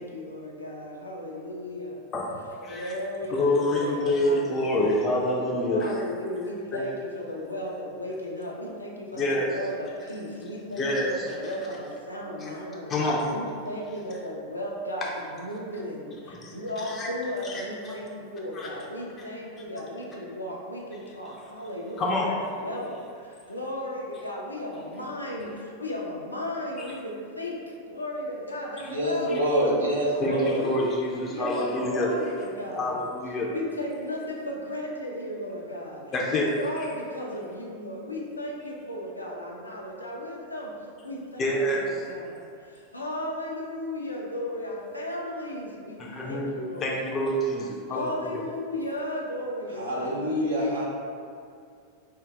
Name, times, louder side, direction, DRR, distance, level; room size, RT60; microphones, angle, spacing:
voice 1, 0.0-2.0 2.7-5.1 5.7-12.9 13.3-29.4 30.3-33.0 33.5-40.8 41.0-47.2 47.9-50.2 50.5-50.8, left 1 dB, 85° left, -2 dB, 0.4 m, -35 dB
voice 2, 2.1-2.9 3.3-6.0 6.7-6.8 9.2-9.5 10.8-11.5 12.4-12.6 12.9-13.3 16.3-16.5 16.9-17.1 17.4-17.9 18.5-18.7 22.0-22.3 29.3-29.4 30.2-32.1 32.7-33.5 36.1-36.5 41.4-41.8 46.0-46.5 46.8-48.4, left 1 dB, 25° left, -3 dB, 0.5 m, -27 dB
voice 3, 28.9-30.6 49.8-50.8, equal, 70° right, -5 dB, 0.7 m, -26 dB
3.5 x 2.2 x 3.5 m, 2.3 s
figure-of-eight pair, 90°, 0 cm